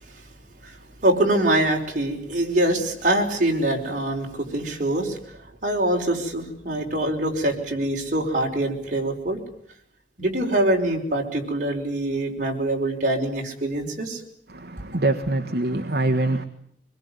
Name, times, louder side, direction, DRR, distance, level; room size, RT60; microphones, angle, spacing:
voice 1, 0.6-9.4 10.2-14.2, right 1 dB, 45° right, 5.2 m, -24 dB
voice 2, 14.5-16.5, right 2 dB, 60° right, 1.4 m, -24 dB
24.5 x 22.0 x 9.6 m
head